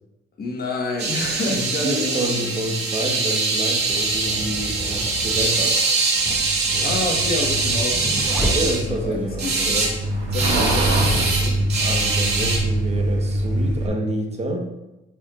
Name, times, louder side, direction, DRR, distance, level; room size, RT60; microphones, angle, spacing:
voice 1, 0.4-2.6 6.8-9.9 10.3-11.7, left 3 dB, 50° left, 1 dB, 1.4 m, -29 dB
sound 1, 1.0-8.8 9.4-9.9 10.3-12.6, right 3 dB, 55° right, 2.2 m, -23 dB
voice 2, 1.4-5.8 8.5-9.7 11.8-14.6, right 1 dB, 35° right, 2 dB, 1.1 m, -28 dB
sound 2, 2.9-9.3, equal, 10° left, 2.0 m, -33 dB
Truck, 6.3-13.9, right 1 dB, 75° right, 1.8 m, -25 dB
9.8 x 4.5 x 2.4 m, 0.97 s
cardioid pair, 90°, 20 cm